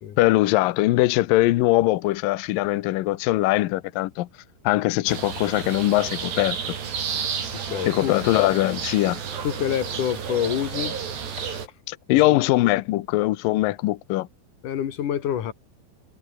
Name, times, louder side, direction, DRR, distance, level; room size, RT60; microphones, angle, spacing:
voice 1, 0.2-4.3 4.6-6.7 7.9-9.2 11.9-14.3, left 17 dB, 80° left, 2.0 m, -21 dB
sound 1, 5.1-11.7, right 7 dB, 65° right, 6.3 m, -31 dB
voice 2, 7.7-8.1 9.4-11.0 11.5-11.6 12.1-12.4 14.6-15.5, left 9 dB, 55° left, 2.9 m, -27 dB
omnidirectional pair, 5.2 m